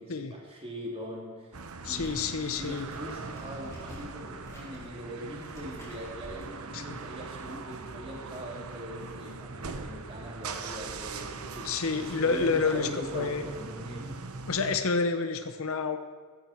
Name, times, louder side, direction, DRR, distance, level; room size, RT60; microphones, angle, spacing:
voice 1, 0.0-1.6 1.9-2.1 2.6-14.2, equal, 25° right, -2 dB, 3.1 m, -41 dB
sound 1, 1.5-14.8, right 4 dB, 75° right, 1.0 m, -41 dB
voice 2, 1.8-2.9 6.7-6.8 9.7-9.8 11.6-12.9 13.1-13.4 14.5-16.0, left 4 dB, 65° left, 9 dB, 0.8 m, -28 dB
sound 2, 1.8-6.4, equal, 15° left, 5.7 m, -49 dB
15.0 x 14.0 x 4.6 m, 1.5 s
head